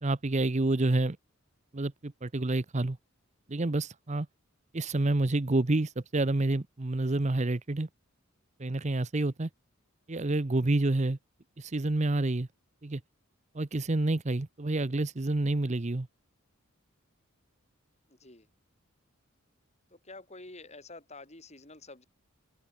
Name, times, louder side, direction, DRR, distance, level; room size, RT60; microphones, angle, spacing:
voice 1, 0.0-1.2 1.7-3.0 3.5-4.3 4.7-7.9 8.6-9.5 10.1-11.2 11.6-12.5 12.8-13.0 13.5-16.1, right 2 dB, 35° right, 0.8 m, -28 dB
voice 2, 18.1-18.5 19.9-22.1, left 2 dB, 30° left, 5.7 m, -48 dB
open air
head